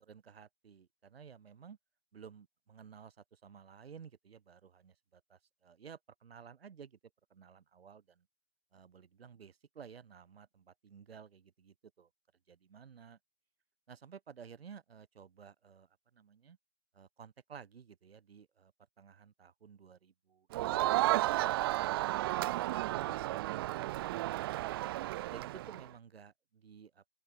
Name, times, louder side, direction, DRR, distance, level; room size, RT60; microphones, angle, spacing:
voice 1, 0.0-1.8 2.1-7.0 7.3-8.2 8.7-12.1 12.5-13.2 13.9-16.6 16.9-18.7 19.0-21.6 25.3-27.1, right 7 dB, 85° right, 7.6 m, -54 dB
Crowd, 20.5-25.8, right 16 dB, 25° right, 0.8 m, -33 dB
open air
hypercardioid pair, 170°, 29 cm